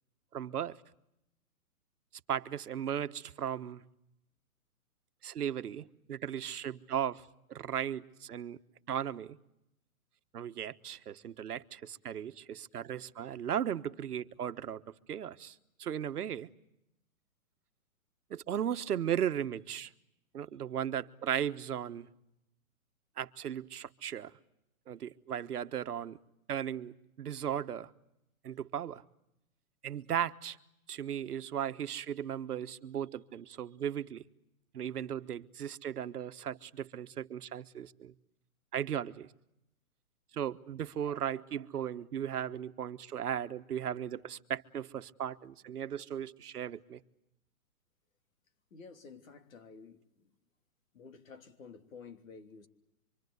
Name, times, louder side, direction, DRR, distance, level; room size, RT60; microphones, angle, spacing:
voice 1, 0.3-0.8 2.3-3.8 5.2-8.6 8.9-9.4 10.3-16.5 18.3-19.9 20.3-22.1 23.2-24.3 24.9-26.2 26.5-27.9 28.4-29.0 29.8-30.6 30.9-34.2 34.7-38.1 38.7-39.3 40.3-47.0, right 9 dB, 80° right, 1.3 m, -36 dB
voice 2, 48.7-50.3 50.9-52.7, left 5 dB, 60° left, 3.1 m, -52 dB
26.0 x 25.5 x 8.1 m
hypercardioid pair, 160°, 45 cm